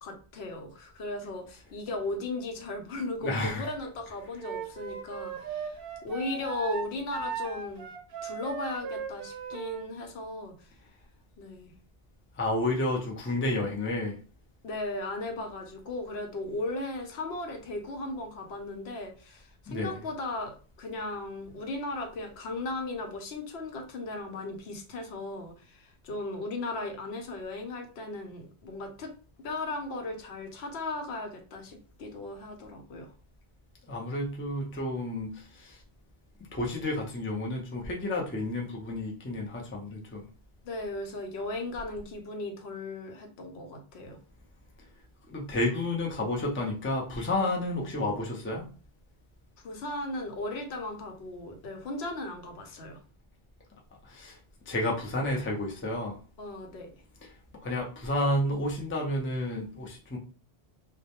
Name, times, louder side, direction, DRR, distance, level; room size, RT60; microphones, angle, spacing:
voice 1, 0.0-7.9 8.2-10.7 11.4-11.7 14.6-29.1 29.4-33.1 40.6-44.2 47.4-47.5 49.6-53.0 56.4-56.9, left 2 dB, 80° left, 4 dB, 0.9 m, -36 dB
voice 2, 3.2-3.8 4.3-4.4 12.4-14.2 19.7-20.1 33.9-35.8 36.5-40.3 45.3-48.7 54.0-54.4 54.7-56.2 57.6-60.2, left 1 dB, 20° left, -1 dB, 0.3 m, -31 dB
Wind instrument woodwind instrument, 4.4-9.9, right 6 dB, 65° right, 0.7 m, -37 dB
2.2 x 2.0 x 2.8 m, 0.37 s
omnidirectional pair, 1.1 m